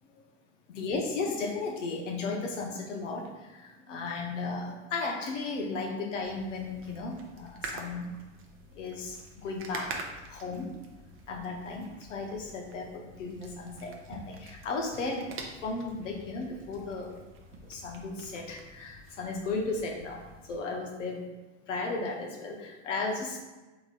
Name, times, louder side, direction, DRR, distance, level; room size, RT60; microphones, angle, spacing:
voice 1, 0.7-8.1 8.7-10.0 10.3-10.7 11.3-15.3 15.6-17.2 17.6-21.2 21.7-23.4, left 3 dB, 85° left, 0 dB, 0.7 m, -35 dB
sound 1, 6.2-20.6, right 3 dB, 35° right, 0.6 m, -47 dB
3.9 x 2.9 x 2.4 m, 1.1 s
hypercardioid pair, 80°, 36 cm